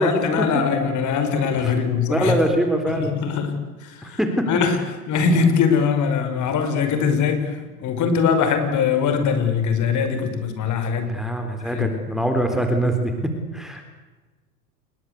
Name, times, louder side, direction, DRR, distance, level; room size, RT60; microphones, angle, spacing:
voice 1, 0.0-2.3 3.0-3.6 3.8-4.2 4.5-4.8 5.1-11.1 11.6-11.9, left 6 dB, 40° left, 8 dB, 5.5 m, -21 dB
voice 2, 2.1-3.1 4.0-4.5 11.1-13.8, right 1 dB, ahead, 4 dB, 4.1 m, -23 dB
28.5 x 22.0 x 8.3 m, 1.2 s
hypercardioid pair, 95°, 47 cm